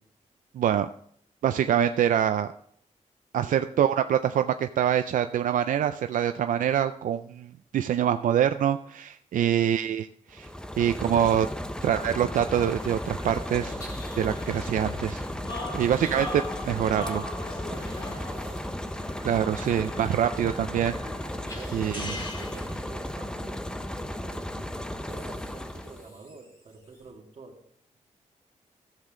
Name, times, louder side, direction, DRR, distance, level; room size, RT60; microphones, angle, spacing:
voice 1, 0.5-0.9 1.4-2.5 3.3-10.5 10.8-11.5 11.8-13.8 14.2-15.2 15.7-17.2 19.2-21.0 21.7-22.2, right 9 dB, 85° right, 9 dB, 0.4 m, -25 dB
voice 2, 3.4-3.8 9.3-9.7 15.6-15.8 17.7-19.0 21.5-24.5 24.9-27.5, right 4 dB, 50° right, -1 dB, 2.4 m, -48 dB
sound 1, 10.3-26.1, left 1 dB, 5° left, 0.6 m, -35 dB
sound 2, 12.4-23.2, left 2 dB, 40° left, 2.2 m, -41 dB
sound 3, 13.8-14.7 16.0-16.3 17.7-20.1 21.5-23.2 25.1-27.1, equal, 25° left, 3.9 m, -51 dB
14.5 x 7.5 x 3.8 m, 0.63 s
wide cardioid pair, 170°, 13 cm